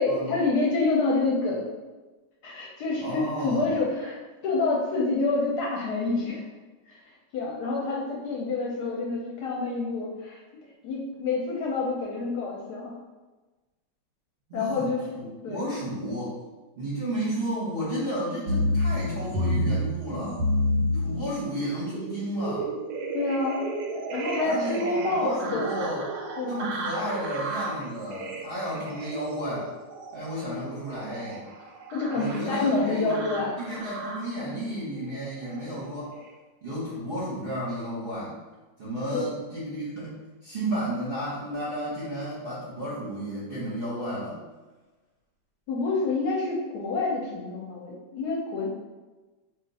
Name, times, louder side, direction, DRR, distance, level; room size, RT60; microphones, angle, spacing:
voice 1, 0.0-1.7 2.4-4.2 4.4-6.5 6.9-7.0 7.3-10.4 10.8-12.9 14.5-15.7 23.1-23.7 24.1-25.7 26.4-26.6 31.9-33.8 39.1-39.2 45.7-48.7, left 3 dB, 70° left, -3 dB, 1.0 m, -27 dB
voice 2, 3.0-3.8 14.5-14.9 15.2-16.4 16.8-20.4 20.9-22.7 24.4-26.0 26.4-29.7 30.1-31.5 32.1-36.1 36.6-38.3 38.8-44.4, right 1 dB, 45° right, -9 dB, 0.7 m, -32 dB
sound 1, 18.5-34.4 35.0-35.7 36.2-36.3, equal, 90° right, 1.3 m, -31 dB
2.8 x 2.4 x 4.0 m, 1.2 s
omnidirectional pair, 2.0 m